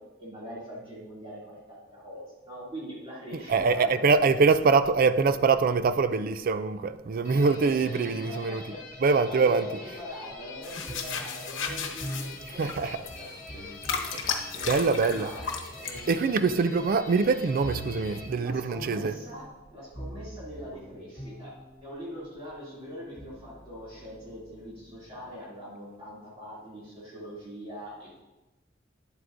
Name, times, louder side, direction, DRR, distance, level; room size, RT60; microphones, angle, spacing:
voice 1, 0.2-4.4 7.6-7.8 8.1-8.8 9.2-13.3 13.5-13.8 14.5-15.4 15.7-16.4 18.4-19.4 19.7-21.5 21.8-28.2, equal, 30° right, 2.6 m, -42 dB
voice 2, 3.3-8.6 9.0-9.7 12.6-13.0 14.1-14.3 14.7-15.3 16.1-19.2, right 4 dB, 50° right, 0.4 m, -24 dB
sound 1, 7.2-18.3, left 3 dB, 45° left, 1.3 m, -45 dB
sound 2, 10.6-16.2, left 6 dB, 75° left, 1.0 m, -34 dB
sound 3, 10.8-22.2 22.9-25.3, equal, 30° left, 2.0 m, -45 dB
9.9 x 7.9 x 2.6 m
head